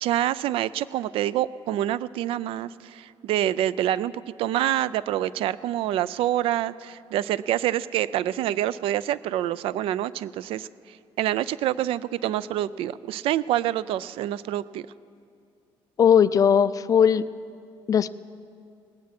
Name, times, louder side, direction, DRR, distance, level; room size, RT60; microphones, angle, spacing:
voice 1, 0.0-14.9, right 12 dB, 75° right, 19 dB, 0.4 m, -27 dB
voice 2, 16.0-17.2 17.9-18.1, left 8 dB, 40° left, 15 dB, 0.4 m, -18 dB
18.5 x 9.6 x 6.0 m, 2.4 s
cardioid pair, 115°, 10 cm